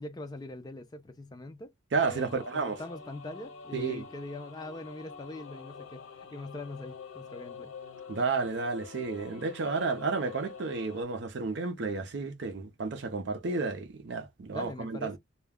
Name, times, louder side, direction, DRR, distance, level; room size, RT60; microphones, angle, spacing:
voice 1, 0.0-1.7 2.0-7.7 14.5-15.2, left 2 dB, 20° left, 0.3 m, -42 dB
voice 2, 1.9-2.8 3.7-4.1 8.1-15.2, right 4 dB, 60° right, 0.5 m, -32 dB
sound 1, 2.0-11.0, left 5 dB, 85° left, 0.7 m, -47 dB
2.3 x 2.1 x 3.4 m
head